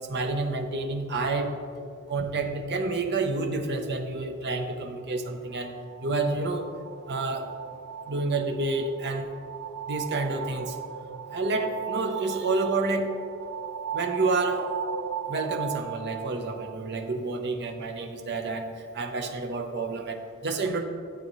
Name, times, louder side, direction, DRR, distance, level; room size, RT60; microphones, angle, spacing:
voice 1, 0.1-1.5 2.1-6.7 7.1-7.5 8.1-9.3 9.9-10.8 11.3-13.1 13.9-14.7 15.3-20.8, right 3 dB, 50° right, 5 dB, 0.8 m, -29 dB
sound 1, 5.5-17.2, right 8 dB, 75° right, 0.4 m, -37 dB
12.5 x 7.8 x 3.1 m, 2.4 s
head